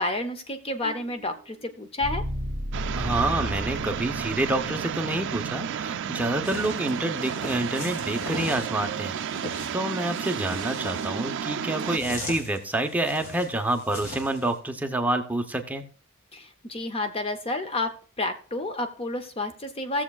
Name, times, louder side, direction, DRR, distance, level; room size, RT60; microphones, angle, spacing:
voice 1, 0.0-2.2 16.3-20.0, left 2 dB, 25° left, 8 dB, 0.6 m, -30 dB
sound 1, 0.8-4.9, equal, 35° right, 2.2 m, -34 dB
sound 2, 2.7-12.0, right 8 dB, 55° right, 0.4 m, -32 dB
voice 2, 2.9-15.8, right 1 dB, 5° right, 4 dB, 0.7 m, -28 dB
sound 3, 6.4-14.5, left 1 dB, 85° left, 3.6 m, -40 dB
17.0 x 7.2 x 2.3 m, 0.39 s
head